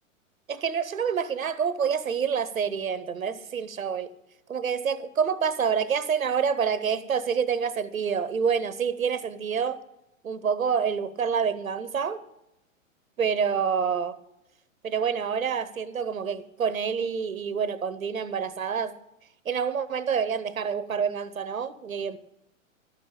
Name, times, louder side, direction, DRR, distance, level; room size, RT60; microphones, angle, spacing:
voice 1, 0.5-4.1 4.5-9.8 10.2-12.2 13.2-14.2 14.8-19.0 19.4-22.2, right 6 dB, 85° right, 0.9 m, -27 dB
12.5 x 9.1 x 6.7 m
figure-of-eight pair, 110°, 40 cm